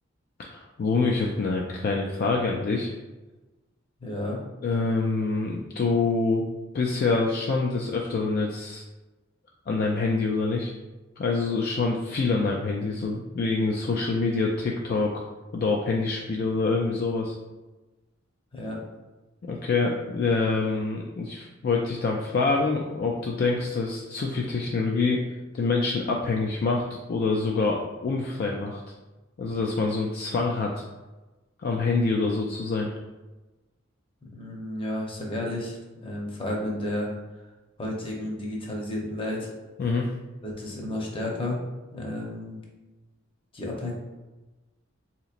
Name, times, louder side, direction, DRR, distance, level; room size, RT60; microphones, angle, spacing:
voice 1, 0.5-2.9 4.6-6.4 6.7-8.8 9.7-10.7 11.2-15.1 15.5-17.4 19.4-25.3 25.5-26.8 27.1-28.8 29.4-30.7 31.6-32.9 39.8-40.1, left 3 dB, 50° left, -1 dB, 0.3 m, -26 dB
voice 2, 4.0-4.4 18.5-18.8 34.3-37.1 37.8-39.5 40.4-41.6 41.9-42.6 43.5-43.9, left 1 dB, 25° left, -2 dB, 0.7 m, -32 dB
3.9 x 2.9 x 2.4 m, 1.1 s
head